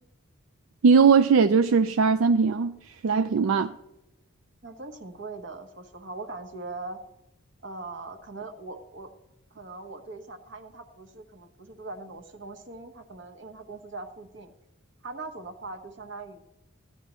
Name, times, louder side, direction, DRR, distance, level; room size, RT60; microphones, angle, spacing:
voice 1, 0.8-2.8 3.0-3.7, right 5 dB, 80° right, 10 dB, 0.4 m, -19 dB
voice 2, 4.6-7.0 7.6-9.1 9.5-14.5 15.0-16.4, right 3 dB, 60° right, 6 dB, 1.1 m, -41 dB
14.5 x 9.9 x 3.0 m, 0.90 s
head